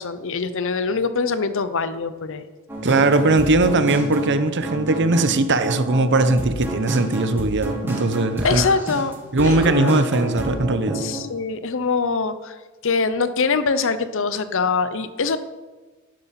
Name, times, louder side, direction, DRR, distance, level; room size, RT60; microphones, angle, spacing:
voice 1, 0.0-2.4 8.4-9.1 9.4-10.1 10.9-12.5 12.8-15.4, left 4 dB, 60° left, 12 dB, 0.8 m, -23 dB
sound 1, 2.7-11.2, right 1 dB, 10° right, 2.5 m, -29 dB
voice 2, 2.8-8.6 9.3-11.0, right 2 dB, 55° right, 11 dB, 1.0 m, -19 dB
11.0 x 11.0 x 5.9 m, 1.3 s
head